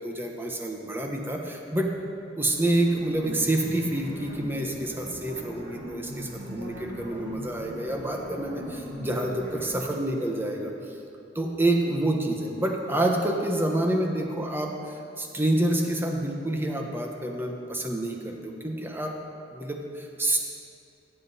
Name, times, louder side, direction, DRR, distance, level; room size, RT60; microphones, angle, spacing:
voice 1, 0.0-1.9 2.4-10.7 11.3-19.2 19.5-20.4, right 1 dB, 10° right, 2 dB, 0.9 m, -28 dB
sound 1, 2.4-9.8, equal, 85° right, 2.3 m, -39 dB
14.5 x 7.8 x 4.1 m, 2.6 s
head